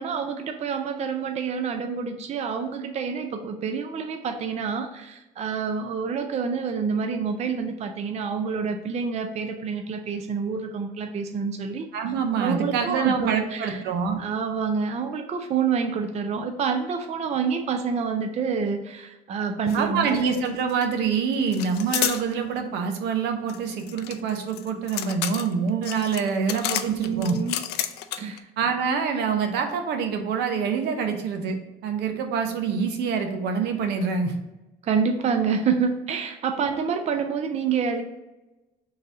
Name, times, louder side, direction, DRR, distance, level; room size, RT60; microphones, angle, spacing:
voice 1, 0.0-11.9 12.4-13.8 14.2-20.2 26.9-27.6 28.2-28.5 34.8-38.0, right 6 dB, 40° right, 6 dB, 0.5 m, -27 dB
voice 2, 11.9-14.2 19.7-27.4 28.6-34.3, right 6 dB, 80° right, 5 dB, 0.7 m, -26 dB
sound 1, 19.7-19.8 20.1-20.8 21.5-22.2 23.5-28.4, left 11 dB, 75° left, 0.4 m, -30 dB
3.8 x 2.7 x 4.7 m, 1.0 s
cardioid pair, 110°, 17 cm